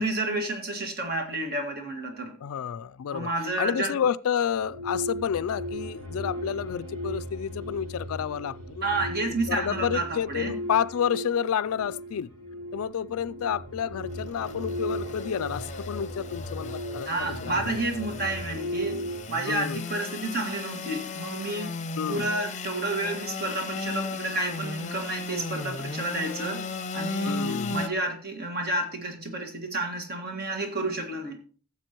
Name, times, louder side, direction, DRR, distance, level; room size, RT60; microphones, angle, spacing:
voice 1, 0.0-2.3 3.1-3.9 8.8-10.5 17.1-19.0 19.3-21.8 22.1-26.6 26.9-31.4, right 2 dB, 45° right, 1.9 m, -30 dB
voice 2, 2.4-3.3 3.6-8.9 9.5-12.3 12.7-17.7 19.5-19.8 22.0-22.3 27.2-27.8, left 8 dB, 70° left, 0.3 m, -30 dB
sound 1, 4.5-19.2, equal, 85° right, 5.3 m, -36 dB
Engine / Sawing, 14.1-27.9, left 3 dB, 30° left, 0.7 m, -35 dB
14.5 x 7.4 x 3.0 m
head